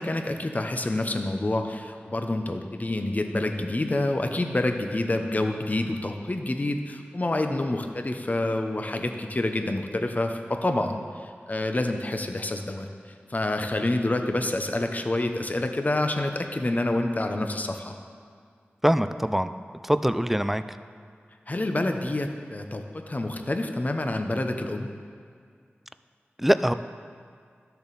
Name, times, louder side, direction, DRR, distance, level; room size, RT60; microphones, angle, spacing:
voice 1, 0.0-12.9 13.3-17.9 21.5-24.9, left 2 dB, 40° left, 5 dB, 0.8 m, -27 dB
voice 2, 18.8-19.5 19.8-20.6 26.4-26.7, equal, 5° right, 12 dB, 0.4 m, -23 dB
12.0 x 6.9 x 4.1 m, 2.1 s
cardioid pair, 40°, 4 cm